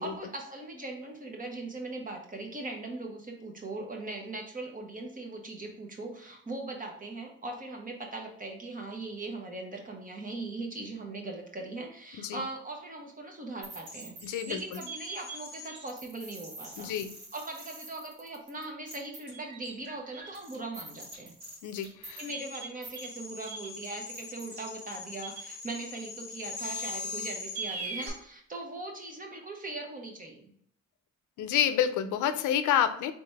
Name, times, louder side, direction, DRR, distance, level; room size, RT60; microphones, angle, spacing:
voice 1, 0.0-16.9 17.3-21.3 22.2-30.5, right 2 dB, 25° right, 2 dB, 1.1 m, -40 dB
sound 1, 13.6-28.1, equal, 75° right, 1.9 m, -41 dB
voice 2, 14.2-14.8 16.8-17.2 21.6-22.2 31.4-33.1, left 10 dB, 80° left, 11 dB, 0.5 m, -29 dB
3.9 x 3.5 x 3.4 m, 0.65 s
cardioid pair, 90°, 30 cm